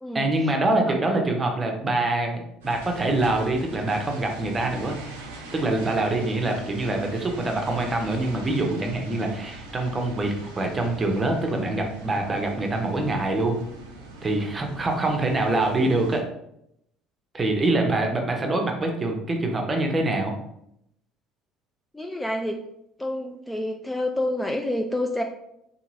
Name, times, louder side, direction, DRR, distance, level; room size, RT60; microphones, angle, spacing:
voice 1, 0.1-4.9 5.5-13.6 14.2-16.2 17.3-20.3, right 2 dB, 30° right, 3 dB, 0.7 m, -25 dB
sound 1, 2.6-16.2, right 2 dB, 85° right, 0.5 m, -42 dB
voice 2, 21.9-22.6 23.0-25.2, left 1 dB, 10° left, 3 dB, 0.3 m, -28 dB
2.8 x 2.7 x 2.7 m, 0.78 s
hypercardioid pair, 65°, 0 cm